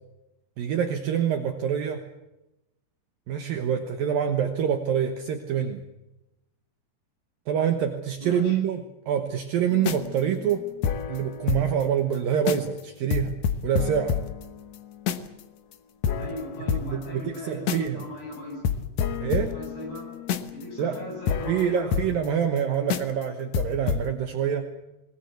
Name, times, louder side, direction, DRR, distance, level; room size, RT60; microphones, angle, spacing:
voice 1, 0.6-2.1 3.3-5.8 7.5-10.7 11.1-13.4 13.6-14.2 16.2-16.3 16.9-18.0 19.2-19.5 20.8-21.0 21.5-24.7, right 8 dB, 65° right, 6 dB, 2.6 m, -26 dB
voice 2, 8.2-8.6 16.2-18.7 19.1-20.1 20.5-22.0, left 1 dB, 65° left, 1 dB, 10.0 m, -38 dB
sound 1, 9.7-11.8 12.1-12.2 12.5-12.8 13.1-15.4 15.7-15.8 16.0-18.0 18.3-18.4 18.6-22.6 22.9-23.2 23.5-24.1, left 7 dB, 85° left, 1.5 m, -29 dB
21.0 x 20.5 x 8.1 m, 0.94 s
omnidirectional pair, 4.9 m